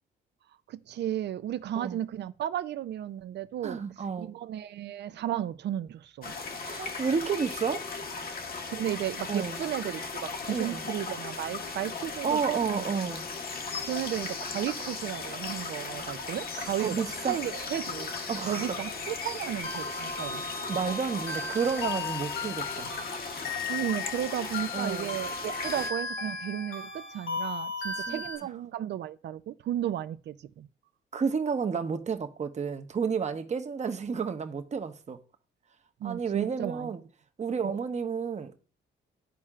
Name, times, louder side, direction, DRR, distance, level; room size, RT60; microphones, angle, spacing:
voice 1, 0.7-3.8 4.2-6.3 8.7-12.8 13.9-18.1 18.4-20.4 23.7-30.7 36.0-36.9 37.6-37.8, right 11 dB, 60° right, 0.5 m, -34 dB
voice 2, 3.6-4.3 6.6-7.9 9.3-9.6 10.5-10.9 12.2-13.3 16.8-17.4 18.3-18.7 20.7-22.9 24.7-25.2 28.1-28.2 31.1-35.2 36.0-37.0 37.4-38.6, right 6 dB, 35° right, 0.9 m, -31 dB
sound 1, 6.2-25.9, left 4 dB, 50° left, 1.0 m, -37 dB
sound 2, 19.6-28.4, left 3 dB, 70° left, 1.7 m, -36 dB
12.5 x 4.3 x 2.4 m
cardioid pair, 90°, 20 cm